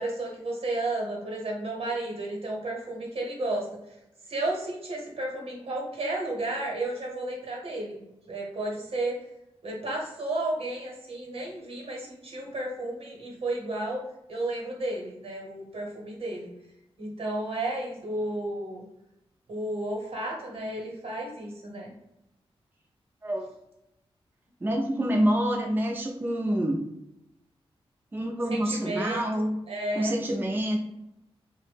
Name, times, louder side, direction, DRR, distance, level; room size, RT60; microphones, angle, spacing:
voice 1, 0.0-3.7 4.3-9.2 9.6-14.0 14.3-16.5 17.0-18.8 19.5-21.9 28.5-30.2, right 2 dB, 70° right, -1 dB, 0.9 m, -32 dB
voice 2, 24.6-26.8 28.1-29.6 30.0-30.8, right 1 dB, 20° right, 0 dB, 0.4 m, -27 dB
2.6 x 2.0 x 3.2 m, 0.87 s
cardioid pair, 75°, 10 cm